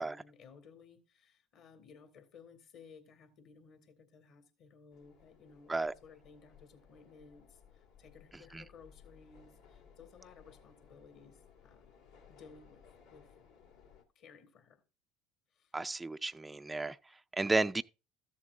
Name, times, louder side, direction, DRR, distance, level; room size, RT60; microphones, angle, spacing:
voice 1, 0.0-11.9 12.3-12.8 13.1-13.3 14.2-14.8 15.5-15.7, left 5 dB, 60° left, 2.2 m, -58 dB
sound 1, 4.9-14.0, left 7 dB, 75° left, 2.1 m, -61 dB
voice 2, 15.7-17.0 17.4-17.8, right 3 dB, 15° right, 0.4 m, -32 dB
14.0 x 7.2 x 2.6 m
hypercardioid pair, 70°, 0 cm